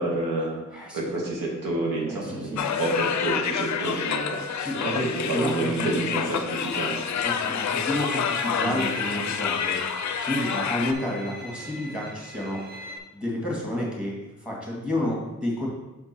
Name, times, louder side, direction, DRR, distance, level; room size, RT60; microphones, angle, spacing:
voice 1, 0.0-0.6 0.9-7.0 8.6-8.8, right 2 dB, 75° right, -3 dB, 2.0 m, -29 dB
voice 2, 0.7-1.1 2.1-2.7 4.6-5.9 7.1-9.8 10.2-12.6 13.1-15.7, left 1 dB, 5° right, -4 dB, 2.1 m, -30 dB
sound 1, 2.6-10.9, left 7 dB, 60° left, 0.5 m, -28 dB
Bowed string instrument, 7.9-13.0, right 2 dB, 30° right, 0.7 m, -40 dB
6.1 x 4.3 x 4.4 m, 1.0 s
wide cardioid pair, 110°, 33 cm